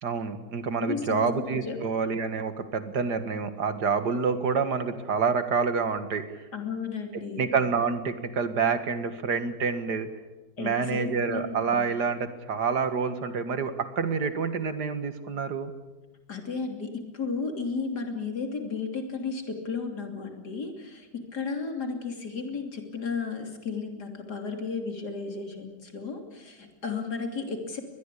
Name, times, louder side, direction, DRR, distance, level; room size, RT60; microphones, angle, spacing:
voice 1, 0.0-6.2 7.4-10.1 10.6-15.7, right 5 dB, 80° right, 10 dB, 2.4 m, -27 dB
voice 2, 0.8-1.8 6.5-7.4 10.6-11.8 16.3-27.8, left 4 dB, 75° left, 4 dB, 3.6 m, -34 dB
23.5 x 20.5 x 8.5 m, 1.1 s
omnidirectional pair, 1.7 m